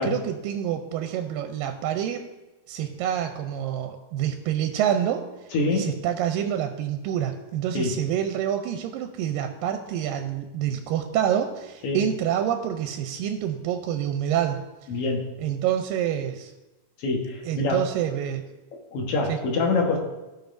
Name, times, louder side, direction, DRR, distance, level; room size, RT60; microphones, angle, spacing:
voice 1, 0.0-2.2 2.7-5.3 5.7-14.6 15.4-16.5 17.4-18.4 19.3-19.4, right 10 dB, 90° right, 6 dB, 2.3 m, -27 dB
voice 2, 5.5-5.9 7.7-8.0 11.8-12.0 14.9-15.3 17.0-17.9 18.9-20.0, left 3 dB, 55° left, 0 dB, 1.8 m, -25 dB
15.5 x 5.3 x 2.6 m, 1.1 s
omnidirectional pair, 3.9 m